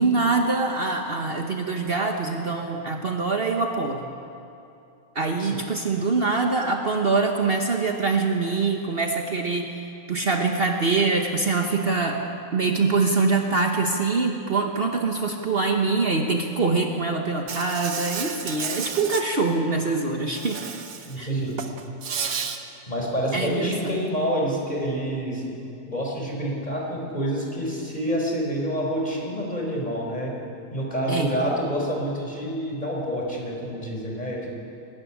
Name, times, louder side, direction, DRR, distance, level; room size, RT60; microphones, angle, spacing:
voice 1, 0.0-4.1 5.1-12.2 12.5-20.6 21.2-21.3 23.3-24.0 31.1-31.3, right 3 dB, 45° right, 2 dB, 1.3 m, -24 dB
Insect, 17.5-19.2 20.3-21.2 21.5-22.6, right 6 dB, 80° right, 1.6 m, -32 dB
voice 2, 21.0-21.5 22.9-25.5 25.8-30.3 30.7-34.5, equal, 30° left, -2 dB, 4.6 m, -27 dB
22.5 x 13.5 x 9.9 m, 2.7 s
omnidirectional pair, 1.4 m